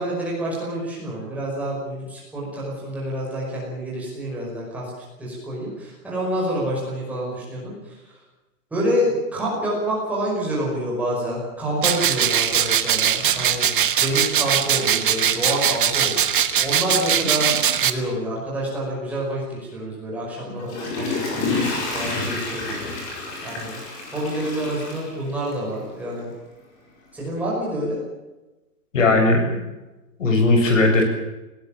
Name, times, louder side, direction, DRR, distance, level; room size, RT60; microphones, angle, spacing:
voice 1, 0.0-4.9 5.2-8.0 8.7-13.7 14.0-16.2 16.6-17.5 17.8-23.8 24.1-26.3 27.1-28.0, equal, 5° right, -5 dB, 5.4 m, -27 dB
sound 1, 11.8-17.9, right 9 dB, 35° right, 1.2 m, -21 dB
Water / Toilet flush, 20.4-25.7 26.2-26.3, left 3 dB, 20° left, 4.9 m, -29 dB
voice 2, 28.9-29.4 30.2-31.0, left 2 dB, 50° left, 4 dB, 7.1 m, -17 dB
19.5 x 18.0 x 8.9 m, 1.1 s
hypercardioid pair, 175°, 47 cm